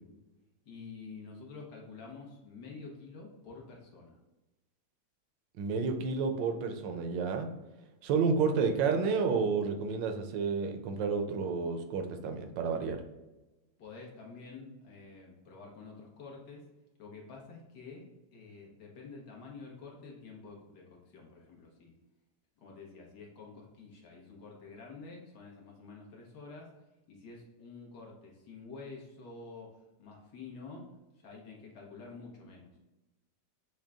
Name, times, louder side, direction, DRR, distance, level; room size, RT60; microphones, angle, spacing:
voice 1, 0.6-4.2 13.8-16.6 17.0-18.0 18.3-21.9 22.6-26.7 27.1-30.9 31.2-32.8, left 4 dB, 70° left, -2 dB, 1.6 m, -49 dB
voice 2, 5.6-7.5 8.0-13.0, right 5 dB, 85° right, 6 dB, 1.3 m, -30 dB
6.3 x 2.2 x 3.5 m, 1.0 s
omnidirectional pair, 1.9 m